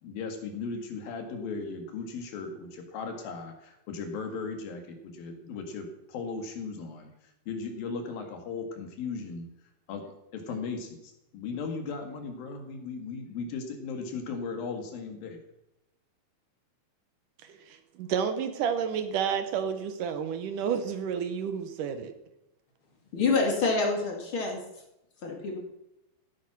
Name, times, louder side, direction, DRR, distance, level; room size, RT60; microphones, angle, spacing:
voice 1, 0.0-9.5 9.9-10.0 10.3-15.4, left 4 dB, 80° left, 5 dB, 3.7 m, -37 dB
voice 2, 17.4-22.1, right 7 dB, 70° right, 9 dB, 2.5 m, -30 dB
voice 3, 23.1-24.6 25.2-25.6, left 4 dB, 40° left, 1 dB, 2.8 m, -27 dB
15.5 x 8.4 x 6.1 m, 0.89 s
omnidirectional pair, 4.0 m